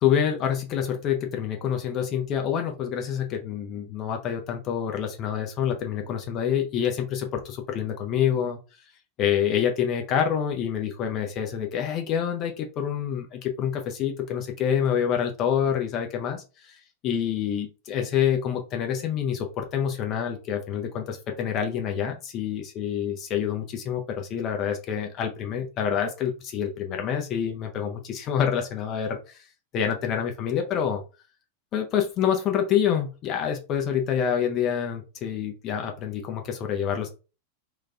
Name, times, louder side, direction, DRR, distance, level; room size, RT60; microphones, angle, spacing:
voice 1, 0.0-8.6 9.2-16.7 17.0-29.4 29.7-31.0 31.7-37.1, left 8 dB, 35° left, 3 dB, 0.5 m, -27 dB
3.1 x 2.2 x 2.3 m, 0.32 s
figure-of-eight pair, 90°, 0 cm